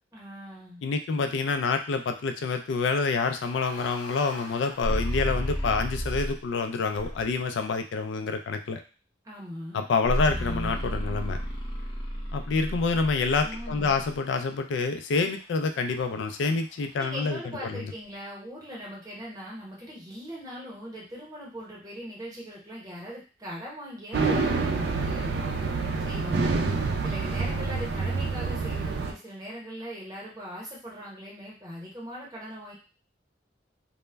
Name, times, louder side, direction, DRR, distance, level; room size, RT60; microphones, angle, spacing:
voice 1, 0.1-0.8 9.2-9.8 13.4-14.0 17.0-25.3 26.0-26.6 27.0-32.7, equal, 20° right, -4 dB, 0.8 m, -40 dB
voice 2, 0.8-8.8 9.7-11.4 12.3-17.9, left 4 dB, 80° left, 7 dB, 0.3 m, -27 dB
sound 1, 3.2-6.5 6.9-7.5 10.1-14.2, equal, 25° left, 0.7 m, -32 dB
sound 2, 24.1-29.1, right 4 dB, 60° right, 0.3 m, -27 dB
2.1 x 2.0 x 3.3 m, 0.35 s
head